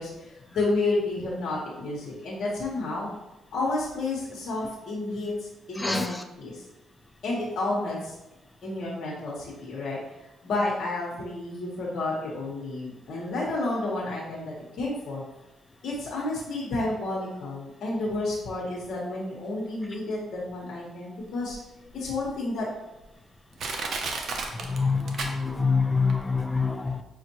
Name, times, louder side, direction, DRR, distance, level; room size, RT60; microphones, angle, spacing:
voice 1, 0.0-3.1 3.5-6.6 7.2-8.1 8.6-10.0 10.4-15.2 15.8-21.6 21.9-22.7, left 2 dB, 65° left, -4 dB, 0.9 m, -31 dB
voice 2, 5.8-6.2 24.5-27.0, left 4 dB, 15° left, 7 dB, 0.4 m, -26 dB
Crushing, 21.5-21.6 22.2-22.3 23.0-23.1 23.6-25.8 26.1-26.2, right 3 dB, 60° right, 0.5 m, -32 dB
5.2 x 2.4 x 2.8 m, 0.95 s
cardioid pair, 90°, 0 cm